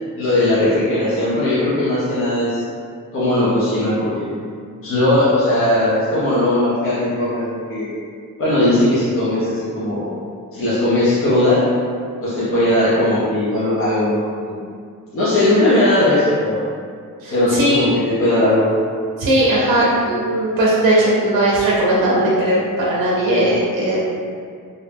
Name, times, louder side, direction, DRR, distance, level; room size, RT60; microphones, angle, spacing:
voice 1, 0.2-2.6 3.1-4.3 4.8-7.9 8.4-10.2 10.5-11.7 12.2-14.6 15.1-16.6 17.3-18.7, left 1 dB, 40° left, -11 dB, 0.6 m, -18 dB
voice 2, 17.2-18.0 19.2-24.0, right 1 dB, 65° right, -5 dB, 0.5 m, -18 dB
2.5 x 2.1 x 3.2 m, 2.2 s
wide cardioid pair, 180°, 34 cm